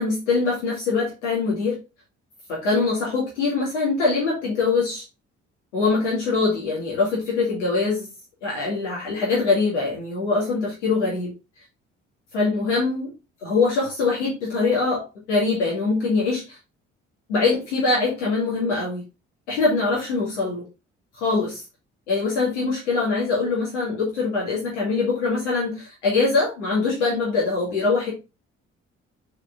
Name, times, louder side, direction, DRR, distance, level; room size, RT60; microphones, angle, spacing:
voice 1, 0.0-1.8 2.5-5.0 5.7-8.1 8.4-11.3 12.3-13.1 13.4-16.6 17.3-19.0 19.5-20.6 21.1-21.6 22.1-28.1, left 4 dB, 80° left, -5 dB, 2.2 m, -23 dB
6.6 x 4.4 x 3.8 m, 0.27 s
figure-of-eight pair, 45°, 35 cm